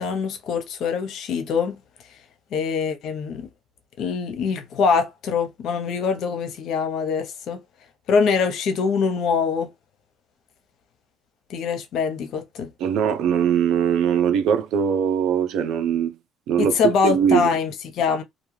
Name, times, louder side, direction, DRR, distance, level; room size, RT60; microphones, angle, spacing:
voice 1, 0.0-1.8 2.5-3.5 4.0-7.6 8.1-9.7 11.5-12.7 16.6-18.2, left 5 dB, 65° left, 0.7 m, -23 dB
voice 2, 12.8-16.2 16.5-17.5, right 8 dB, 70° right, 0.5 m, -21 dB
2.6 x 2.3 x 3.1 m
cardioid pair, 100°, 0 cm